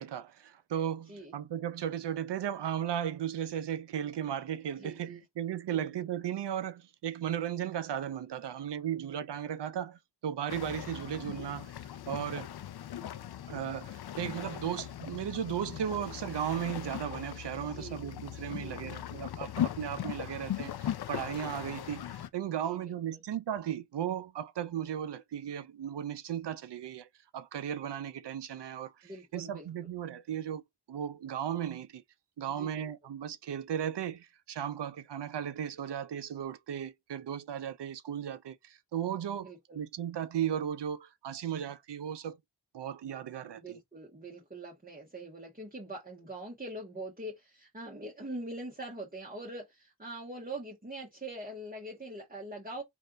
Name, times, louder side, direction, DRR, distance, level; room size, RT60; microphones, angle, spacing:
voice 1, 0.0-11.7 12.1-12.5 13.5-30.6 30.9-32.0 32.4-39.5 39.7-42.4 42.7-43.8, right 9 dB, 80° right, 0.5 m, -36 dB
voice 2, 4.8-5.2 5.7-5.8 17.6-18.0 18.5-19.2 22.6-23.2 29.0-29.7 32.5-32.9 39.4-39.8 43.5-52.8, right 1 dB, 20° right, 1.4 m, -43 dB
sound 1, 10.5-22.3, left 11 dB, 70° left, 0.5 m, -39 dB
3.3 x 2.6 x 3.8 m
cardioid pair, 50°, 41 cm